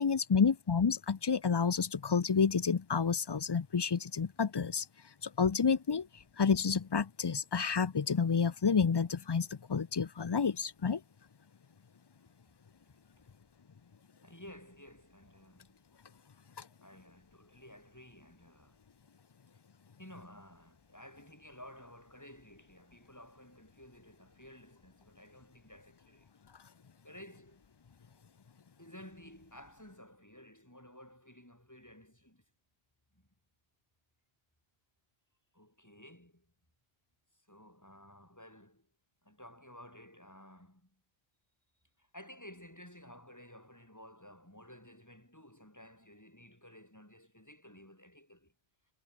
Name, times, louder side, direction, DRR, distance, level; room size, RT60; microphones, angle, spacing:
voice 1, 0.0-4.9 5.2-11.0, left 6 dB, 35° left, 0.4 m, -29 dB
voice 2, 14.2-15.8 16.8-18.8 20.0-26.3 27.0-27.6 28.8-32.4 33.1-33.3 35.5-36.5 37.5-38.9 39.2-41.0 42.0-48.5, left 1 dB, 15° left, 4.7 m, -54 dB
omnidirectional pair, 1.1 m